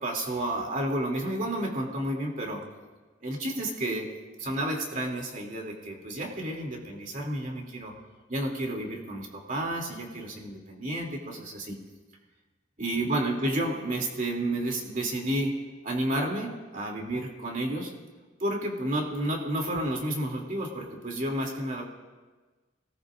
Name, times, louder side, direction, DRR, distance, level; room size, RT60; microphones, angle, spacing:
voice 1, 0.0-2.6 3.2-4.1 4.4-7.9 8.3-11.8 12.8-15.6 15.8-17.9 18.4-21.8, right 1 dB, 45° right, 0 dB, 2.9 m, -31 dB
25.5 x 19.0 x 2.6 m, 1.3 s
head